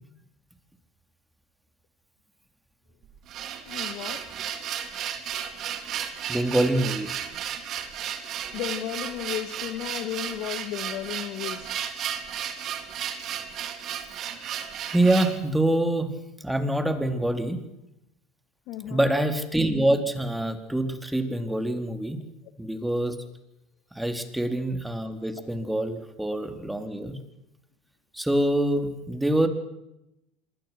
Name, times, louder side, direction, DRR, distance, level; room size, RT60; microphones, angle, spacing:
sound 1, 3.0-15.4, right 9 dB, 50° right, 3.5 m, -34 dB
voice 1, 3.7-4.2 8.5-11.8 18.7-19.1, left 12 dB, 60° left, 10 dB, 2.1 m, -34 dB
voice 2, 6.3-7.2 14.9-16.1 16.4-17.6 18.9-22.2 22.6-23.2 23.9-27.2 28.1-29.5, right 1 dB, 5° right, 7 dB, 4.1 m, -25 dB
27.5 x 22.0 x 6.1 m, 0.87 s
hypercardioid pair, 85°, 0 cm